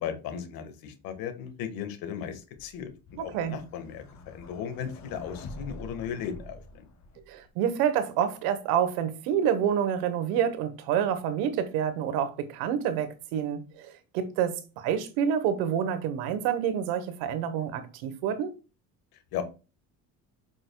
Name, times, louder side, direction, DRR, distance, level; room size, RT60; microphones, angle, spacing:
voice 1, 0.0-2.9 3.2-6.8 19.3-19.4, left 8 dB, 75° left, 1.6 m, -36 dB
sound 1, 2.6-7.5, left 2 dB, 50° left, 1.9 m, -46 dB
voice 2, 3.2-3.6 7.3-18.5, right 8 dB, 85° right, 1.2 m, -28 dB
7.8 x 6.2 x 2.3 m
cardioid pair, 100°, 35 cm